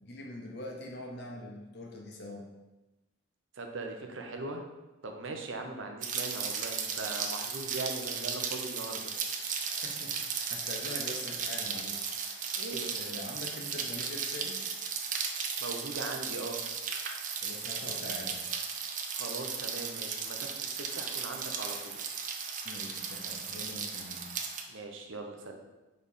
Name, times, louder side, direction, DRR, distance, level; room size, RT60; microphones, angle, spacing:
voice 1, 0.0-2.4 9.6-12.1 12.9-14.7 17.4-18.4 22.6-24.2, left 1 dB, 55° left, 0 dB, 1.1 m, -43 dB
voice 2, 3.5-4.6 5.0-9.1 12.6-12.9 15.6-16.6 19.1-22.0 24.7-25.6, right 3 dB, 70° right, 3 dB, 0.8 m, -40 dB
Rain, 6.0-24.6, right 6 dB, 40° right, 0.6 m, -36 dB
4.9 x 4.2 x 5.5 m, 1.1 s
head